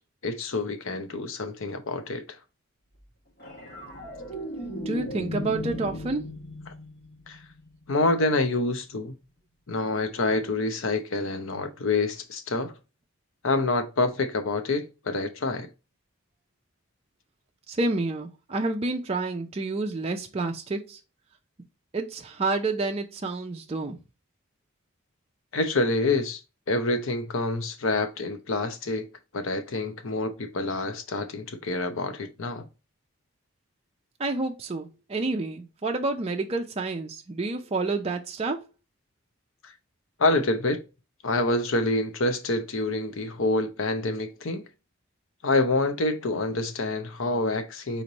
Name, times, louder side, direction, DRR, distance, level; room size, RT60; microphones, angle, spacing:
voice 1, 0.2-2.2 7.3-7.4 7.9-9.2 9.7-12.7 13.4-15.7 25.5-26.4 26.7-29.1 29.3-32.6 39.6-39.7 40.2-40.8 41.2-44.6 45.4-48.0, left 2 dB, 65° left, 0.7 m, -27 dB
sound 1, 3.4-7.9 10.3-10.5, left 1 dB, 50° left, 1.7 m, -37 dB
voice 2, 4.9-6.2 17.7-21.0 21.9-24.0 34.2-38.7, right 3 dB, 30° right, 0.4 m, -29 dB
4.3 x 3.0 x 3.9 m
head